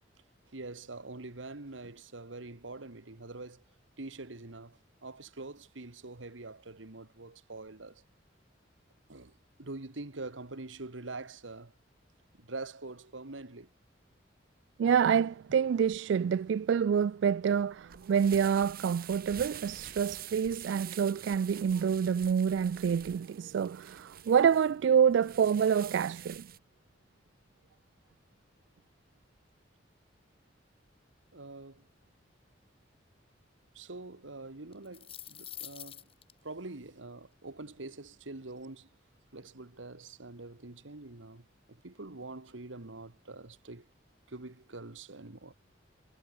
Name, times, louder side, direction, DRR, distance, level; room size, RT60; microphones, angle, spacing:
voice 1, 0.5-3.6 4.0-8.0 9.1-9.3 9.6-11.7 12.4-13.7 31.3-31.8 33.8-36.0 36.4-38.9 39.3-41.5 41.8-43.9 44.3-45.5, right 2 dB, 90° right, 1.7 m, -44 dB
voice 2, 14.8-26.5, right 7 dB, 70° right, 0.3 m, -27 dB
sound 1, 17.5-26.6, right 11 dB, 50° right, 2.4 m, -47 dB
sound 2, 34.7-36.3, left 10 dB, 30° left, 2.1 m, -45 dB
head